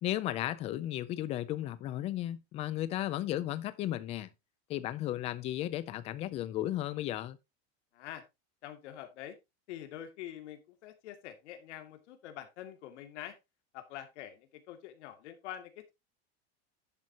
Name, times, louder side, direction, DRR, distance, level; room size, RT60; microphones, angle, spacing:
voice 1, 0.0-4.3 4.7-7.4, left 13 dB, 20° left, 0.4 m, -34 dB
voice 2, 7.9-8.2 8.6-9.4 9.7-13.4 13.7-15.9, left 11 dB, 85° left, 2.4 m, -45 dB
10.5 x 8.0 x 2.9 m
supercardioid pair, 175°, 34 cm